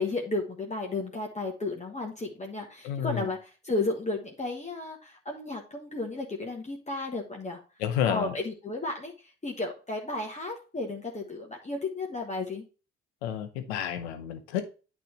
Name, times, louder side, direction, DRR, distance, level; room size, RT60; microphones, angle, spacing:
voice 1, 0.0-7.6 8.0-9.1 9.4-12.6, left 2 dB, 20° left, 0 dB, 1.4 m, -33 dB
voice 2, 2.8-3.3 7.8-8.4 13.2-14.8, left 9 dB, 85° left, 9 dB, 0.9 m, -30 dB
9.2 x 3.4 x 4.2 m, 0.34 s
hypercardioid pair, 50°, 32 cm